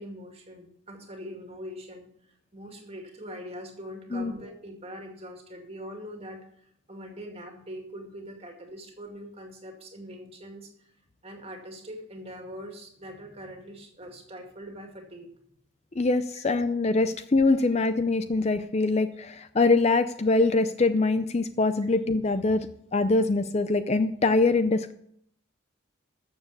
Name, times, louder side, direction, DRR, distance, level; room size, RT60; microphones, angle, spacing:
voice 1, 0.0-2.1 2.5-10.9 11.2-15.3 17.6-17.7, equal, 30° right, 3 dB, 2.2 m, -42 dB
voice 2, 16.0-22.7 22.9-24.9, left 3 dB, 30° left, 10 dB, 0.4 m, -23 dB
13.0 x 7.2 x 6.9 m, 0.69 s
head